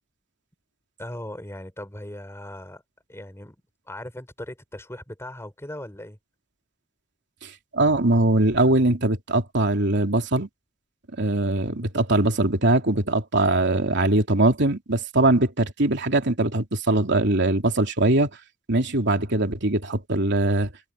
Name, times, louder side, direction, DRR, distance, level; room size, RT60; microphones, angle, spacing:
voice 1, 1.0-2.8 3.1-3.6 3.9-6.2, left 1 dB, 15° left, 5.5 m, -38 dB
voice 2, 7.4-10.5 11.2-18.3 18.7-20.7, right 2 dB, 60° right, 3.2 m, -21 dB
head